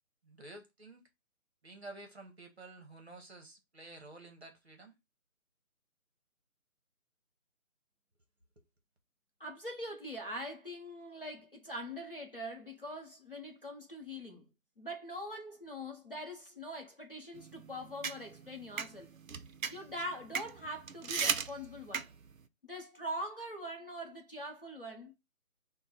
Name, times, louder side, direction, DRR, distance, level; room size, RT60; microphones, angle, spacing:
voice 1, 0.2-1.1 1.6-4.9 8.6-8.7, right 2 dB, 50° right, 1.0 m, -51 dB
voice 2, 9.4-14.5 14.8-19.1 19.7-22.1 22.6-25.1, equal, 40° left, 0.7 m, -43 dB
sound 1, 17.4-22.4, right 6 dB, 70° right, 0.5 m, -38 dB
3.8 x 2.2 x 4.2 m
figure-of-eight pair, 180°, 43 cm